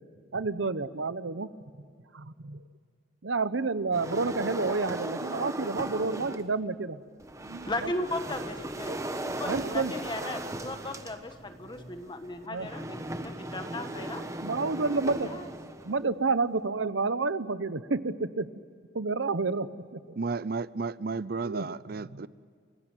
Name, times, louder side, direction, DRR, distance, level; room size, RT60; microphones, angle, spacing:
voice 1, 0.3-1.5 2.1-2.6 3.2-7.0 7.4-7.9 8.9-9.0 9.4-9.9 12.5-12.7 14.4-15.4 15.8-18.5 18.9-19.7 19.9-20.2 21.4-22.2, right 3 dB, 85° right, 0.9 m, -30 dB
sound 1, 3.9-6.5 7.2-16.1, right 1 dB, 15° right, 1.2 m, -37 dB
voice 2, 7.7-14.3 15.2-15.5, left 2 dB, 25° left, 1.4 m, -37 dB
voice 3, 20.2-22.3, right 4 dB, 50° right, 0.6 m, -33 dB
29.5 x 16.0 x 9.1 m
head